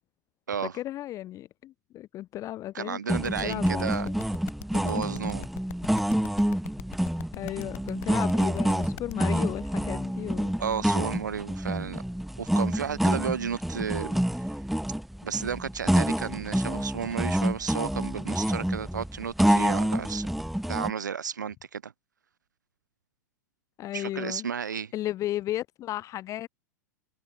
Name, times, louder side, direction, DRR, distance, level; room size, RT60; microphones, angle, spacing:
voice 1, 0.7-4.2 7.3-10.5 23.8-24.5 24.9-26.5, left 14 dB, 35° left, 1.4 m, -35 dB
voice 2, 2.7-4.1 4.7-5.5 10.6-12.0 12.4-14.5 15.2-20.3 20.7-21.9 23.9-24.9, right 7 dB, 80° right, 1.0 m, -33 dB
sound 1, 3.1-20.9, equal, ahead, 0.4 m, -27 dB
sound 2, 3.2-9.1, left 21 dB, 55° left, 3.0 m, -41 dB
hypercardioid pair, 100°, 10 cm